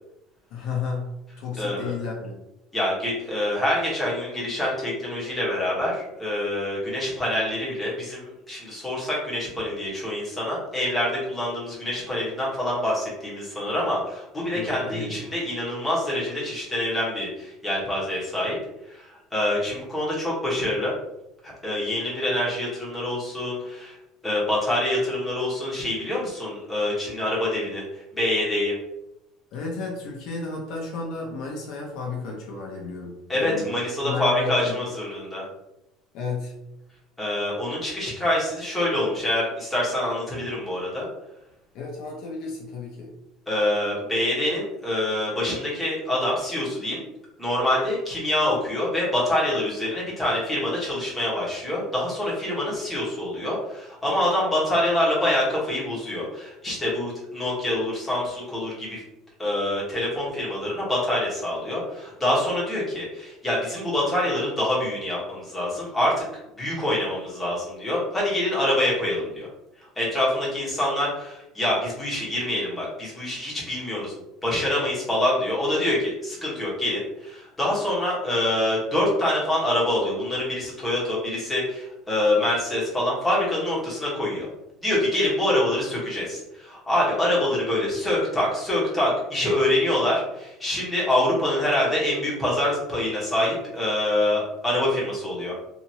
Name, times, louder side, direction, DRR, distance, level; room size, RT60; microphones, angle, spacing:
voice 1, 0.5-1.1 1.4-2.4 14.5-15.1 29.5-33.7 34.0-34.8 36.1-36.5 41.7-43.1, left 4 dB, 60° left, -1 dB, 0.6 m, -32 dB
voice 2, 1.5-1.9 2.7-18.5 18.9-20.9 21.4-24.0 24.2-28.7 33.3-35.4 37.2-41.1 43.5-47.0 47.4-59.0 59.4-66.2 66.6-69.5 70.0-74.1 74.4-84.5 84.8-95.5, left 1 dB, 10° left, -7 dB, 1.1 m, -25 dB
2.9 x 2.5 x 2.7 m, 0.90 s
cardioid pair, 150°, 0 cm